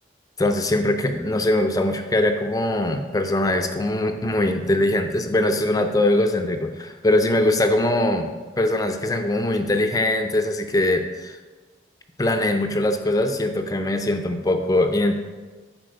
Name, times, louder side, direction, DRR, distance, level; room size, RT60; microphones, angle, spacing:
voice 1, 0.4-8.3 8.6-11.4 12.2-15.1, left 1 dB, 20° left, 6 dB, 0.5 m, -22 dB
10.5 x 4.3 x 6.6 m, 1.3 s
head